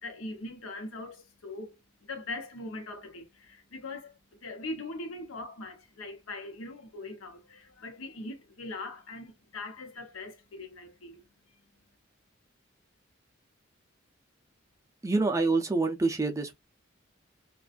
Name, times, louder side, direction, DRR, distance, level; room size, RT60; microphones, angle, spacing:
voice 1, 0.0-11.6, left 2 dB, 90° left, 0.8 m, -41 dB
voice 2, 15.0-16.5, right 3 dB, 15° right, 0.4 m, -26 dB
2.5 x 2.3 x 2.4 m
head